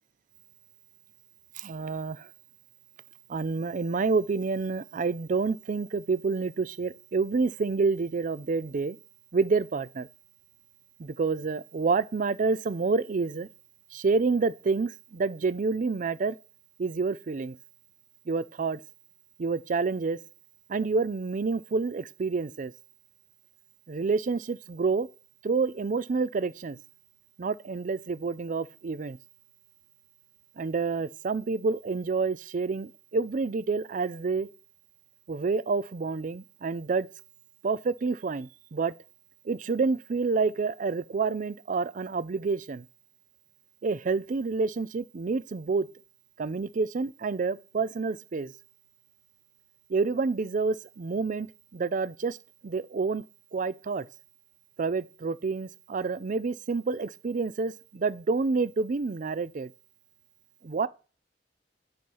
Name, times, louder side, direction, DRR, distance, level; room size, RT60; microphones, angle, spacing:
voice 1, 1.6-2.3 3.3-9.0 9.3-10.1 11.0-13.5 13.9-16.4 16.8-17.6 18.3-18.8 19.4-20.2 20.7-22.7 23.9-25.1 25.4-26.8 27.4-29.2 30.6-34.5 35.3-37.1 37.6-38.9 39.4-42.9 43.8-45.9 46.4-48.5 49.9-51.5 51.7-52.4 52.6-53.2 53.5-54.1 54.8-59.7 60.6-60.9, right 4 dB, 45° right, 0.4 m, -28 dB
9.4 x 4.4 x 5.5 m
head